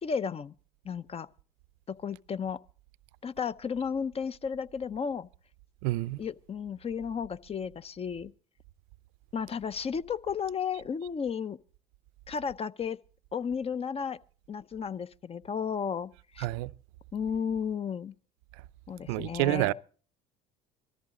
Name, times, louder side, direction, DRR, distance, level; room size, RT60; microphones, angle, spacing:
voice 1, 0.0-0.5 0.8-1.3 1.9-2.6 3.2-5.3 6.2-8.3 9.3-11.6 12.3-13.0 13.3-14.2 14.5-16.5 17.1-18.1 18.9-19.7, left 6 dB, 30° left, 0.7 m, -33 dB
voice 2, 5.8-6.2 16.4-16.7 19.1-19.7, right 19 dB, 75° right, 0.6 m, -28 dB
19.0 x 14.0 x 3.8 m
supercardioid pair, 85°, 19 cm